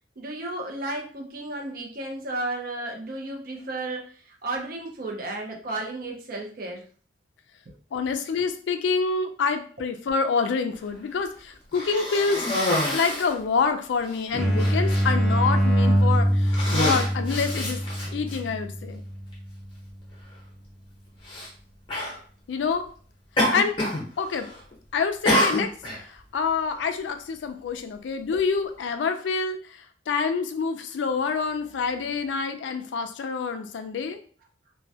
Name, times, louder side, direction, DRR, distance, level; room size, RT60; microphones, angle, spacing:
voice 1, 0.2-6.9 28.3-28.4, right 2 dB, 50° right, 0 dB, 0.5 m, -33 dB
voice 2, 7.9-12.5 12.9-17.8 18.1-19.0 22.5-22.9 23.4-23.8 24.2-24.5 24.9-34.2, left 5 dB, 75° left, 8 dB, 0.3 m, -27 dB
Cough, 11.7-13.4 14.1-14.2 14.6-15.0 15.8-16.0 16.4-18.4 19.3-19.4 21.2-21.5 21.9-22.2 23.4-24.0 24.3-24.7 25.3-26.0, left 1 dB, 30° left, 0.7 m, -26 dB
sound 1, 14.3-19.8, equal, ahead, 0.4 m, -24 dB
2.2 x 2.1 x 2.7 m, 0.44 s
head